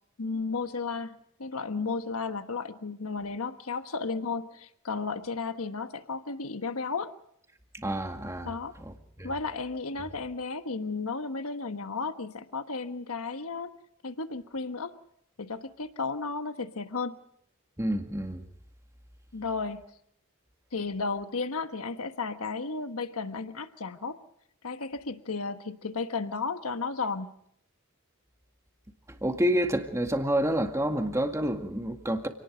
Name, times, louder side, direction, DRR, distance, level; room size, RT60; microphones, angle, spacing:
voice 1, 0.2-7.1 8.4-8.7 9.2-13.7 14.0-15.0 15.4-17.2 19.3-19.8 20.7-24.2 24.6-27.3, left 4 dB, 80° left, 1.3 m, -33 dB
voice 2, 7.7-8.5 8.9-9.0 9.2-9.3 17.8-18.4 29.2-32.3, right 1 dB, 15° right, 2.0 m, -28 dB
28.0 x 19.0 x 5.2 m
head